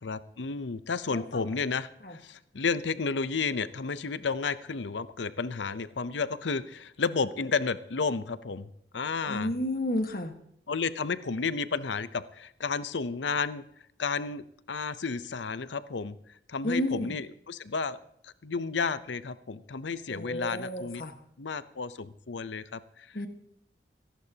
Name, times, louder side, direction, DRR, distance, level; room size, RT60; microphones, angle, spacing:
voice 1, 0.0-9.5 10.7-13.6 14.0-16.2 16.5-21.0 21.4-23.1, left 4 dB, 90° left, 14 dB, 0.7 m, -32 dB
voice 2, 1.1-1.5 2.0-2.2 9.3-10.3 16.6-17.2 20.1-21.2 23.1-23.3, left 1 dB, 55° left, 6 dB, 1.5 m, -32 dB
26.5 x 11.5 x 2.9 m, 0.72 s
head